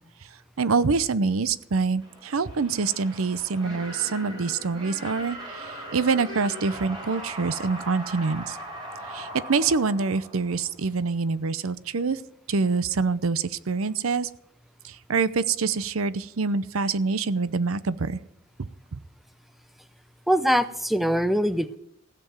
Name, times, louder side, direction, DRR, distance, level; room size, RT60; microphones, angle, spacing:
voice 1, 0.6-8.6 9.1-12.2 12.5-14.3 14.8-18.2 18.9-19.0, right 4 dB, 80° right, 16 dB, 0.7 m, -25 dB
sound 1, 2.0-10.9, equal, 25° right, 3.8 m, -39 dB
voice 2, 20.3-21.8, equal, ahead, 13 dB, 0.5 m, -23 dB
16.0 x 6.9 x 9.0 m, 0.74 s
head